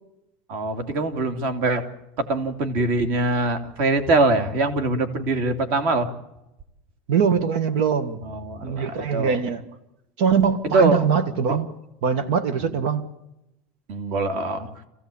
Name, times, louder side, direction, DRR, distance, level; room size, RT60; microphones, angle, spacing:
voice 1, 0.5-1.8 2.2-6.1 8.2-9.4 10.6-11.1 11.5-11.6 13.9-14.7, right 2 dB, 45° right, 2.7 m, -23 dB
voice 2, 7.1-8.2 8.6-9.6 10.2-11.7 12.0-13.0, right 6 dB, 65° right, 1.7 m, -22 dB
27.0 x 16.0 x 8.6 m
cardioid pair, 175°, 5 cm